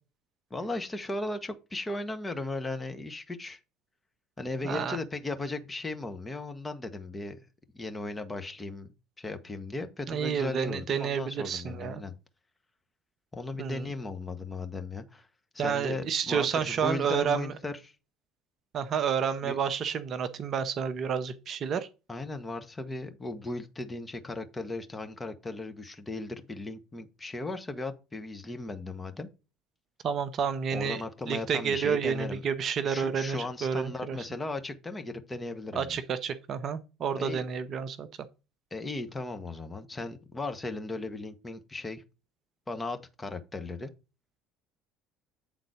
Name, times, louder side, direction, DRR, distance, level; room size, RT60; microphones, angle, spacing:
voice 1, 0.5-3.6 4.4-7.4 7.7-12.1 13.3-15.3 15.5-17.9 19.4-19.6 22.1-29.3 30.7-32.5 32.8-36.0 37.2-37.4 38.7-42.0 42.7-43.9, left 2 dB, 15° left, 1.2 m, -37 dB
voice 2, 4.6-5.0 10.1-12.0 13.6-13.8 15.6-17.5 18.7-21.9 30.0-31.0 31.3-34.2 35.7-38.1, right 7 dB, 40° right, 0.7 m, -30 dB
8.8 x 3.9 x 4.8 m
figure-of-eight pair, 60°, 0 cm